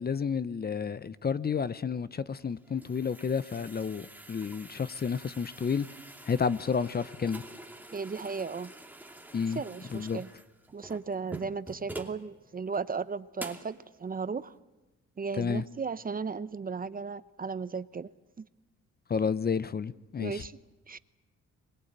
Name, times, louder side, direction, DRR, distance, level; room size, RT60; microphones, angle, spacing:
voice 1, 0.0-5.9 6.3-7.4 9.3-9.6 9.9-10.2 15.4-15.6 19.1-20.4, left 6 dB, 30° left, 0.8 m, -31 dB
sound 1, 2.4-12.2 12.7-12.8 13.4-13.8, right 2 dB, 5° right, 2.6 m, -46 dB
voice 2, 7.9-8.7 9.5-10.3 10.7-14.5 15.2-18.1 18.4-18.5 20.2-20.6 20.9-21.0, right 5 dB, 30° right, 0.8 m, -35 dB
24.5 x 21.5 x 8.9 m
cardioid pair, 90°, 30 cm